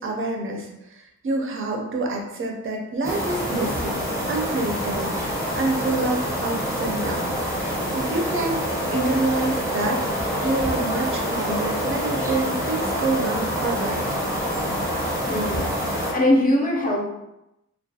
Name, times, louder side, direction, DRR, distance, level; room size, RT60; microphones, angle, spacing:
voice 1, 0.0-4.0 4.3-7.6 7.9-14.2, right 2 dB, 45° right, 1 dB, 0.5 m, -27 dB
sound 1, 3.0-16.1, equal, 10° right, 0.8 m, -26 dB
voice 2, 15.3-17.0, left 1 dB, 30° left, -2 dB, 0.5 m, -22 dB
2.3 x 2.2 x 2.6 m, 0.89 s
wide cardioid pair, 140°, 31 cm